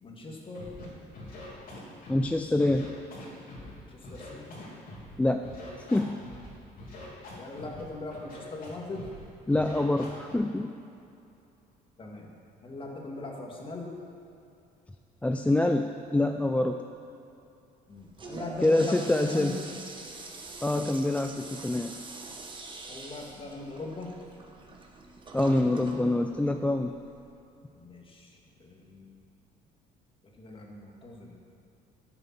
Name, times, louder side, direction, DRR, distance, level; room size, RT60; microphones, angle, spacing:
voice 1, 0.0-0.7 3.9-4.6 7.3-9.1 12.0-12.3 12.6-13.9 17.9-19.6 22.9-24.1 27.8-28.3 28.6-29.1 30.4-31.3, left 2 dB, 30° left, 0 dB, 1.9 m, -40 dB
Scratching (performance technique), 0.5-0.9 1.1-2.3 2.6-3.7 4.0-5.1 5.4-6.5 6.8-7.8 8.1-8.7 8.9-9.2 9.5-10.3, left 2 dB, 60° left, 2.9 m, -44 dB
voice 2, 2.1-2.9 5.2-5.5 5.8-6.2 9.5-10.7 15.2-16.8 18.6-19.6 20.6-22.0 25.3-27.0, left 2 dB, 10° left, 5 dB, 0.4 m, -26 dB
Toilet flush, 17.9-27.3, right 3 dB, 30° right, 1.2 m, -45 dB
12.5 x 6.9 x 6.0 m, 2.7 s
cardioid pair, 110°, 17 cm